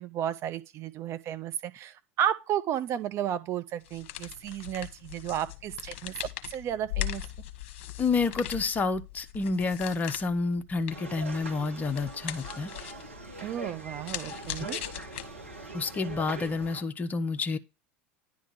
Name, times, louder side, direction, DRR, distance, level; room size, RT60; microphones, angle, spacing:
voice 1, 0.0-7.2 13.4-14.8, right 10 dB, 40° right, 1.0 m, -33 dB
sound 1, 3.8-15.7, left 12 dB, 60° left, 1.1 m, -40 dB
voice 2, 8.0-12.7 15.7-17.6, left 4 dB, 25° left, 0.8 m, -29 dB
sound 2, 10.9-16.8, right 3 dB, 85° right, 1.7 m, -42 dB
10.0 x 3.7 x 6.1 m
figure-of-eight pair, 80°, 7 cm